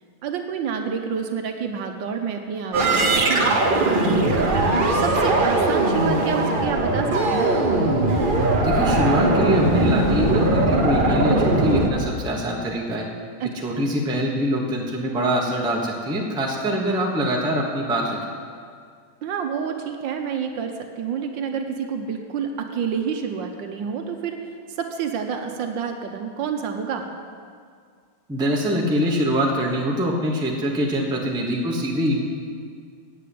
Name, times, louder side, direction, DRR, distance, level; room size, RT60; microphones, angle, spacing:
voice 1, 0.2-4.7 5.0-7.5 13.4-13.5 19.2-24.4 24.8-27.1, right 7 dB, 70° right, 5 dB, 1.3 m, -28 dB
sound 1, 2.7-11.9, right 2 dB, 50° right, 0.6 m, -20 dB
voice 2, 8.6-13.1 13.6-18.2 28.3-32.2, equal, 5° right, -2 dB, 0.6 m, -24 dB
8.5 x 7.9 x 8.4 m, 2.1 s
omnidirectional pair, 2.3 m